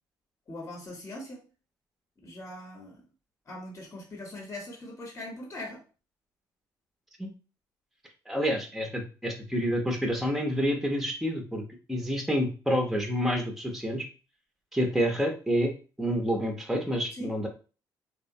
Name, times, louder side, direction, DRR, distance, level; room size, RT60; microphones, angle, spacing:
voice 1, 0.5-1.4 2.2-3.0 3.5-5.8 17.1-17.4, left 1 dB, 35° left, 0 dB, 0.8 m, -41 dB
voice 2, 8.3-11.6 11.9-14.1 14.7-15.7 16.0-17.5, equal, ahead, 2 dB, 0.6 m, -28 dB
2.9 x 2.1 x 2.6 m, 0.35 s
supercardioid pair, 70°, 8 cm